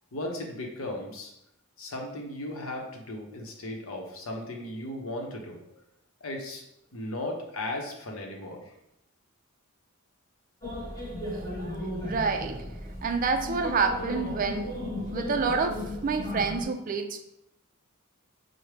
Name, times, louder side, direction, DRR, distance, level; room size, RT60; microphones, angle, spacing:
voice 1, 0.1-1.3 1.8-5.6 6.2-6.6 6.9-8.6, left 1 dB, 75° left, 1 dB, 0.8 m, -36 dB
sound 1, 10.6-16.6, left 1 dB, 15° left, 1.1 m, -35 dB
voice 2, 12.0-12.6 13.0-14.8 15.1-17.2, right 4 dB, 40° right, 7 dB, 0.3 m, -28 dB
6.0 x 2.1 x 3.2 m, 0.81 s
head